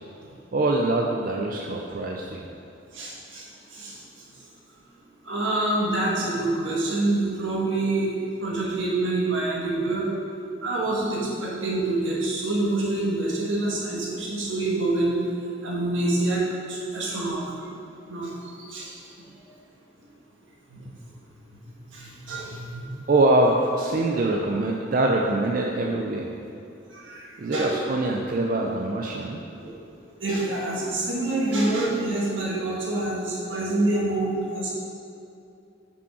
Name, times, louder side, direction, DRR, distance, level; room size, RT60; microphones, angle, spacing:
voice 1, 0.5-2.5 23.1-26.3 27.4-29.4, right 2 dB, 45° right, 0 dB, 0.4 m, -24 dB
voice 2, 2.9-4.0 5.2-10.1 10.6-15.2 15.6-17.4 18.1-19.0 20.7-20.9 21.9-22.9 26.9-27.8 29.6-29.7 30.2-34.7, right 2 dB, 85° right, -5 dB, 1.6 m, -26 dB
5.5 x 5.2 x 4.9 m, 2.7 s
head